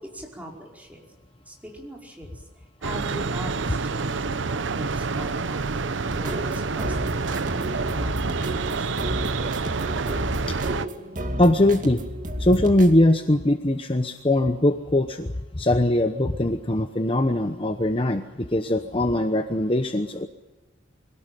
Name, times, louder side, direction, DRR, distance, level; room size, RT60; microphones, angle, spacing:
voice 1, 0.1-1.0 1.4-2.3 2.8-8.9, right 1 dB, 10° right, -1 dB, 5.1 m, -41 dB
sound 1, 2.8-10.9, right 4 dB, 80° right, 0.8 m, -28 dB
sound 2, 6.1-13.0, equal, 40° right, 2.5 m, -32 dB
voice 2, 11.4-12.0 12.4-20.3, left 1 dB, 30° left, 7 dB, 1.0 m, -21 dB
24.5 x 17.5 x 9.2 m, 1.1 s
head